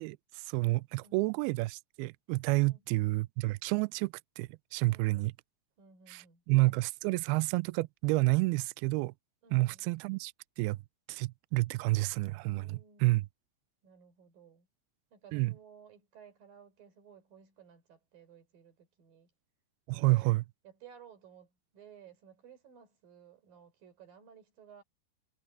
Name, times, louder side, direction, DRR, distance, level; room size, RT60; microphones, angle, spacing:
voice 1, 0.0-5.3 6.1-9.1 9.5-10.8 11.1-13.3 15.3-15.5 19.9-20.4, right 22 dB, 90° right, 2.2 m, -30 dB
voice 2, 2.6-3.1 4.8-5.3 5.8-6.4 9.4-9.9 12.5-13.2 13.8-14.7 15.1-19.3 19.9-20.4 20.6-24.8, right 7 dB, 55° right, 5.9 m, -57 dB
omnidirectional pair, 5.0 m